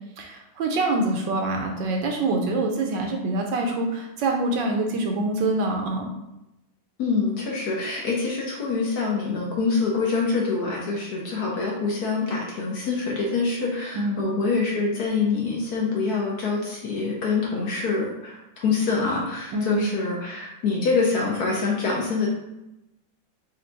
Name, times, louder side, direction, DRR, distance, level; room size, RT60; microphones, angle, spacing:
voice 1, 0.2-6.1 13.9-14.3 19.5-19.9, right 2 dB, 75° right, 2 dB, 1.2 m, -25 dB
voice 2, 7.0-22.3, left 4 dB, 65° left, -2 dB, 1.1 m, -25 dB
4.4 x 2.3 x 3.9 m, 0.90 s
omnidirectional pair, 2.2 m